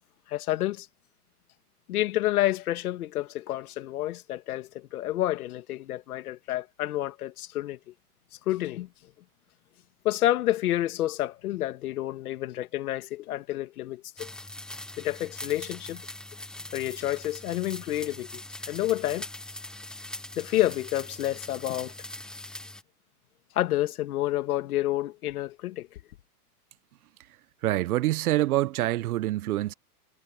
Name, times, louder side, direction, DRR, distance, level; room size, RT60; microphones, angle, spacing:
voice 1, 0.3-0.9 1.9-7.8 8.5-8.9 10.0-14.3 15.0-16.0 16.7-19.3 20.4-21.9 23.5-25.9, left 14 dB, 65° left, 2.1 m, -29 dB
sound 1, 14.2-22.8, left 1 dB, ahead, 0.6 m, -41 dB
voice 2, 27.6-29.7, right 16 dB, 65° right, 0.9 m, -26 dB
supercardioid pair, 155°, 47 cm